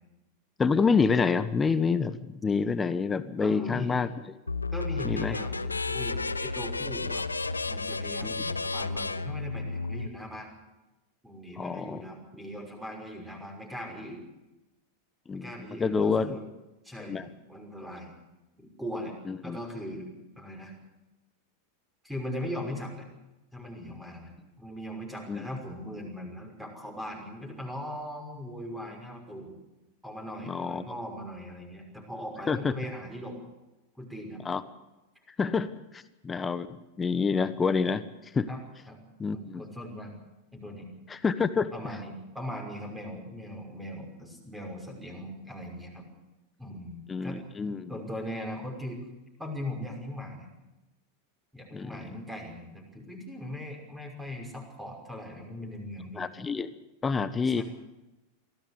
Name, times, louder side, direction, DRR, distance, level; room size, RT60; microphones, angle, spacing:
voice 1, 0.6-4.1 5.0-5.4 8.2-8.4 11.6-12.0 15.3-15.5 15.8-16.4 17.1-17.3 19.3-19.6 25.3-25.4 30.4-30.8 32.5-32.7 34.4-34.6 35.4-36.7 37.0-38.1 38.3-38.5 39.2-39.6 41.1-41.7 47.1-47.9 51.7-52.0 56.2-56.7 57.0-57.6, left 5 dB, 15° left, 14 dB, 1.0 m, -27 dB
voice 2, 3.4-4.0 4.7-7.4 7.6-10.5 11.2-14.2 15.3-16.4 16.8-17.2 17.5-18.2 18.6-19.1 19.4-20.1 20.4-20.7 22.0-23.0 23.5-24.3 24.6-29.5 30.0-33.4 34.0-34.4 38.5-39.0 39.3-40.1 40.5-40.9 41.7-46.1 46.6-49.0 49.4-50.5 51.5-56.3 57.4-57.6, equal, 5° right, 2 dB, 5.9 m, -39 dB
sound 1, 4.5-10.1, left 3 dB, 80° left, 0.7 m, -32 dB
24.0 x 15.5 x 8.3 m, 1.0 s
figure-of-eight pair, 90°, 0 cm